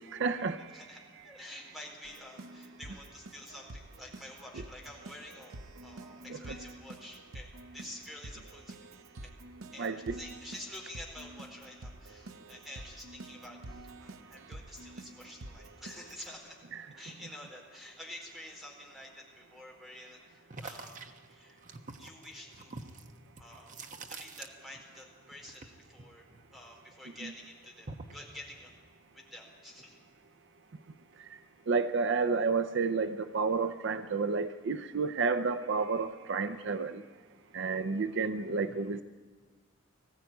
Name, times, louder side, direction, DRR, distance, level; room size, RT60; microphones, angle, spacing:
voice 1, 0.1-0.8 9.8-10.2 16.7-16.8 27.2-27.3 31.7-37.0 37.5-39.0, right 4 dB, 60° right, 11 dB, 0.6 m, -30 dB
voice 2, 0.7-7.5 7.7-8.9 9.2-9.3 9.7-16.6 16.9-21.6 22.0-23.0 23.4-23.8 24.1-26.2 26.5-28.7 29.1-30.0, left 1 dB, ahead, -1 dB, 4.3 m, -49 dB
Keyboard (musical), 2.0-16.4, right 2 dB, 85° right, 0.9 m, -48 dB
sound 1, 20.5-25.0 25.3-26.9 27.3-28.3, right 3 dB, 40° right, 1.2 m, -46 dB
20.0 x 15.0 x 9.2 m, 1.5 s
head